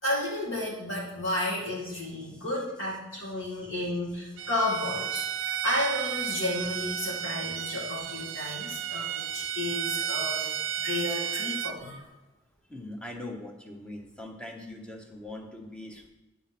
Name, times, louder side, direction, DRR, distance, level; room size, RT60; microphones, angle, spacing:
voice 1, 0.0-10.5 10.8-12.1, left 1 dB, 70° left, -4 dB, 2.1 m, -32 dB
voice 2, 2.1-2.5 5.5-5.6 12.7-16.1, left 1 dB, 5° left, 2 dB, 0.9 m, -42 dB
Bowed string instrument, 4.4-11.8, right 9 dB, 75° right, 0.4 m, -33 dB
9.5 x 4.0 x 5.9 m, 1.1 s
head